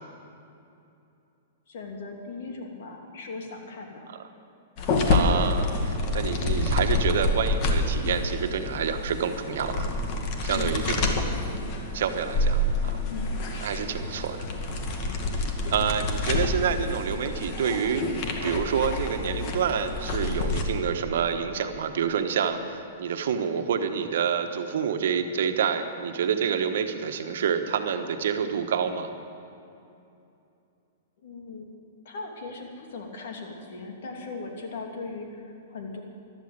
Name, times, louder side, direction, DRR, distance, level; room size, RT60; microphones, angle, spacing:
voice 1, 1.7-4.1 10.5-11.0 13.1-13.3 15.8-15.9 31.2-31.7 32.0-36.0, left 4 dB, 70° left, 2 dB, 2.8 m, -38 dB
sound 1, 4.8-20.6, left 2 dB, 45° left, 2.1 m, -28 dB
voice 2, 5.1-9.9 10.4-11.1 11.9-13.0 13.6-14.4 15.7-18.0 18.4-29.1, right 7 dB, 70° right, 7 dB, 1.3 m, -28 dB
14.5 x 11.5 x 8.2 m, 2.7 s
hypercardioid pair, 120°, 0 cm